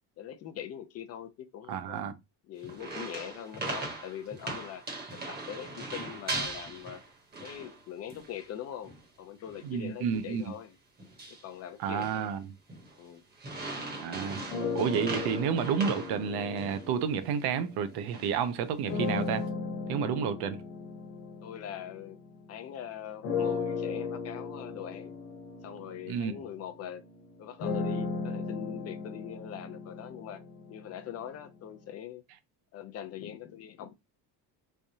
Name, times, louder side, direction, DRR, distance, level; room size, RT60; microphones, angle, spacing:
voice 1, 0.2-2.0 2.5-4.8 5.1-7.0 7.4-10.8 11.3-12.3 13.0-13.2 21.4-22.2 22.5-25.2 25.6-27.0 27.4-30.4 30.7-32.2 32.7-34.0, left 10 dB, 40° left, 0.4 m, -42 dB
voice 2, 1.7-2.1 9.6-10.5 11.8-12.4 14.0-14.4 14.7-19.4 19.9-20.6 26.1-26.5, right 7 dB, 65° right, 0.7 m, -30 dB
sound 1, 2.6-7.8 8.1-8.5 8.8-9.0 9.5-9.7 10.1-10.4 11.0-11.5 11.8-12.3 12.7-13.0 13.4-16.9 17.2-17.3 17.9-18.4 18.8-19.3, right 2 dB, 25° right, 1.0 m, -40 dB
sound 2, 14.5-18.1 18.9-22.7 23.2-31.2, left 4 dB, 85° left, 1.1 m, -36 dB
3.5 x 3.3 x 2.7 m
cardioid pair, 170°, 41 cm